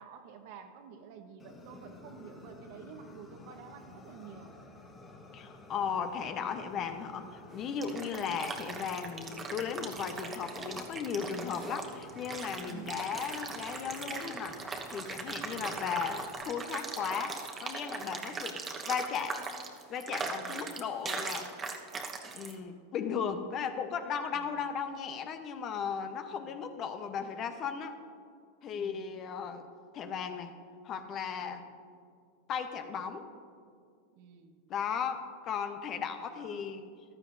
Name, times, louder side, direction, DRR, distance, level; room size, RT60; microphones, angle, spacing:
voice 1, 0.0-4.5 12.7-13.0 15.5-15.8 18.3-18.6 20.4-20.8 24.3-24.6 26.3-26.5 28.7-29.1 31.4-31.8 34.1-34.6 36.2-36.7, right 6 dB, 60° right, 5 dB, 1.2 m, -51 dB
Fire, 1.4-16.4, left 2 dB, 25° left, 1.4 m, -52 dB
voice 2, 5.3-18.6 18.9-19.4 19.9-21.5 22.3-28.0 28.6-29.7 29.9-30.5 30.8-31.6 32.5-33.3 34.7-36.9, left 7 dB, 40° left, 8 dB, 0.9 m, -36 dB
sound 1, 7.5-22.5, right 4 dB, 25° right, 1.1 m, -40 dB
14.5 x 12.0 x 2.7 m, 2.2 s
hypercardioid pair, 105°, 0 cm